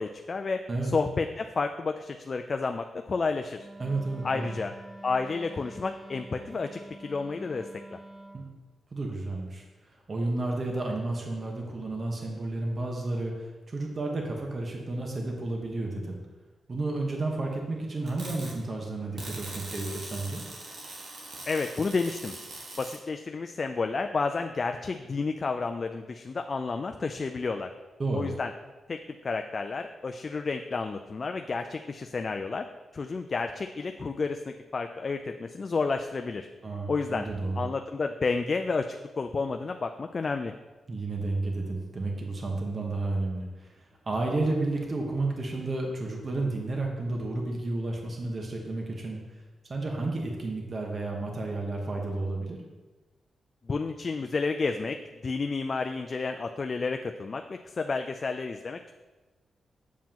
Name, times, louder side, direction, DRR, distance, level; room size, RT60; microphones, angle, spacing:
voice 1, 0.0-3.7 4.2-4.7 5.0-8.0 21.5-22.3 22.8-27.7 28.1-28.5 28.9-32.7 32.9-36.5 36.9-37.3 37.6-40.5 53.7-55.0 55.2-58.9, left 4 dB, 45° left, 6 dB, 0.4 m, -31 dB
Wind instrument woodwind instrument, 3.6-8.4, right 2 dB, 20° right, 0.7 m, -47 dB
voice 2, 3.8-4.5 8.3-8.5 8.9-16.2 16.7-20.4 28.0-28.3 36.6-37.6 40.9-49.2 49.7-52.6, right 2 dB, 40° right, 0 dB, 1.2 m, -32 dB
sound 1, 18.1-18.5 19.2-23.0, right 2 dB, 75° right, 1.7 m, -42 dB
7.4 x 7.2 x 2.9 m, 1.2 s
cardioid pair, 80°, 0 cm